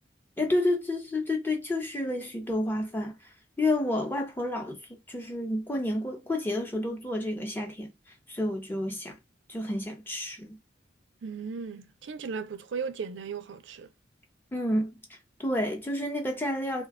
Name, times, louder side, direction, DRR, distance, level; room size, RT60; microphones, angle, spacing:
voice 1, 0.4-3.2 3.6-7.9 8.3-9.2 9.5-10.6 14.5-15.0 15.4-16.9, left 1 dB, 10° left, 0.8 m, -30 dB
voice 2, 11.2-13.9, right 5 dB, 85° right, 0.4 m, -36 dB
2.7 x 2.2 x 3.5 m
head